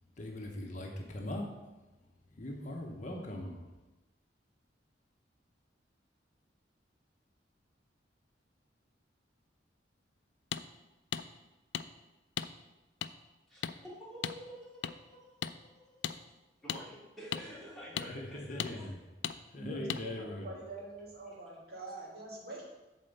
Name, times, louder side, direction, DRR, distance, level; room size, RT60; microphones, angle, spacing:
voice 1, 0.2-1.5 2.3-3.6 18.0-19.0 19.5-20.5, left 1 dB, 45° left, 0 dB, 1.0 m, -40 dB
sound 1, 10.5-10.6 11.1-11.2 11.7-11.9 12.4-12.5 13.0-13.1 13.6-13.8 14.2-14.4 14.8-14.9 15.4-15.5 16.0-16.2 16.7-16.8 17.3-17.4 18.0-18.1 18.6-18.7 19.2-19.4 19.9-20.0, left 9 dB, 75° left, 0.4 m, -35 dB
voice 2, 13.5-16.2 16.6-18.9, equal, ahead, -9 dB, 2.9 m, -49 dB
voice 3, 19.6-22.6, right 1 dB, 60° right, -4 dB, 2.1 m, -44 dB
7.5 x 4.4 x 6.6 m, 1.1 s
head